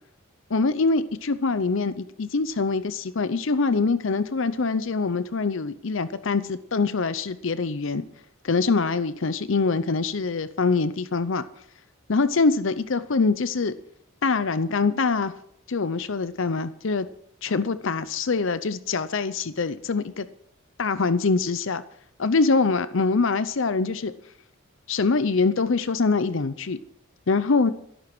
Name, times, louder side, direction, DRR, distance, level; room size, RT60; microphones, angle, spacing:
voice 1, 0.5-8.0 8.4-11.4 12.1-13.7 14.2-15.3 15.7-17.1 17.4-20.3 20.8-21.8 22.2-24.1 24.9-26.8 27.3-27.7, left 4 dB, 65° left, 14 dB, 0.7 m, -24 dB
13.0 x 11.0 x 6.1 m, 0.69 s
head